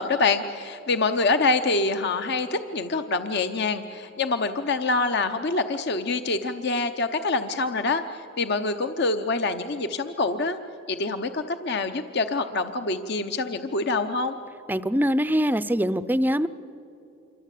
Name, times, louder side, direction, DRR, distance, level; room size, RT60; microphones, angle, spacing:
voice 1, 0.0-10.6 10.9-14.4, left 3 dB, 55° left, 8 dB, 0.8 m, -26 dB
voice 2, 14.7-16.5, equal, 10° right, 15 dB, 0.5 m, -23 dB
27.0 x 24.0 x 8.4 m, 2.8 s
head